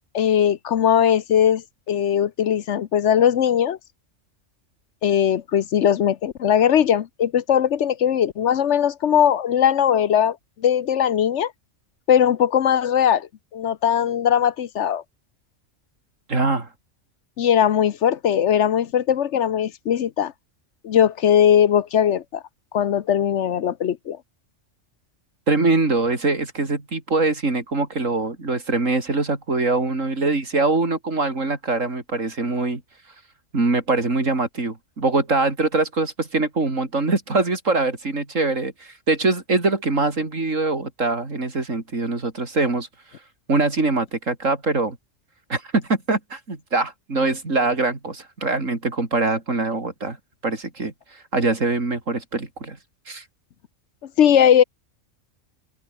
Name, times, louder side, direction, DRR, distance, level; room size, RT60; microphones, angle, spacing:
voice 1, 0.1-3.8 5.0-10.4 10.6-11.5 12.1-15.0 17.4-20.3 20.8-22.4 22.7-24.2 54.2-54.6, left 9 dB, 70° left, 1.1 m, -19 dB
voice 2, 16.3-16.7 25.5-32.8 33.5-42.9 43.5-45.0 45.5-50.2 50.4-50.9 51.3-52.8 53.1-53.2, right 3 dB, 85° right, 4.1 m, -23 dB
omnidirectional pair, 1.3 m